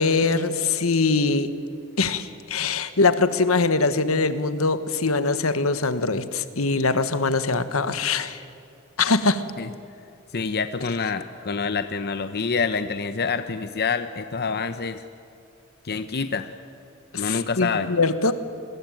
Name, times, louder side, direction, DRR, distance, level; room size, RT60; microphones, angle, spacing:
voice 1, 0.0-1.5 2.0-8.4 9.0-9.4 17.1-18.3, left 3 dB, 75° left, 12 dB, 1.4 m, -22 dB
voice 2, 10.3-15.0 15.8-16.5 17.2-17.9, left 5 dB, 50° left, 10 dB, 0.8 m, -27 dB
27.0 x 21.0 x 9.1 m, 2.6 s
head